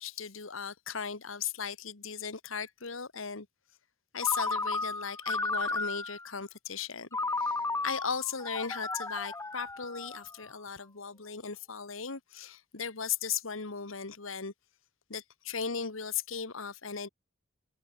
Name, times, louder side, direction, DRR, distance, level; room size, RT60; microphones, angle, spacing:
voice 1, 0.0-3.5 4.1-14.5 15.1-17.1, left 6 dB, 75° left, 1.6 m, -37 dB
Ringtone, 4.2-6.3 7.1-10.5, left 3 dB, 15° left, 0.7 m, -34 dB
open air
head